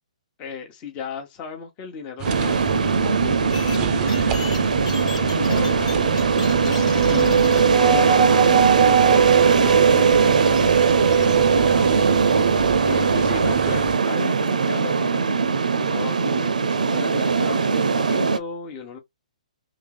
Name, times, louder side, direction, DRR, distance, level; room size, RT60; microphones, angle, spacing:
voice 1, 0.4-6.2 6.6-12.0 12.4-15.3 15.7-19.0, left 6 dB, 30° left, 1.0 m, -36 dB
sound 1, 2.2-14.0, right 8 dB, 20° right, 0.5 m, -23 dB
sound 2, 2.2-18.4, right 5 dB, 85° right, 0.5 m, -20 dB
sound 3, 3.5-7.6, left 6 dB, 65° left, 0.9 m, -38 dB
3.0 x 2.5 x 3.7 m
hypercardioid pair, 135°, 4 cm